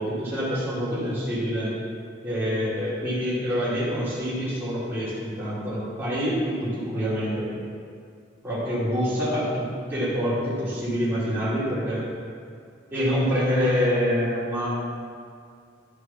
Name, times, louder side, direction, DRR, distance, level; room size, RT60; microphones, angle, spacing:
voice 1, 0.0-1.7 2.2-7.5 8.4-12.0 12.9-14.7, equal, 10° right, -13 dB, 2.9 m, -26 dB
12.0 x 5.7 x 6.0 m, 2.2 s
head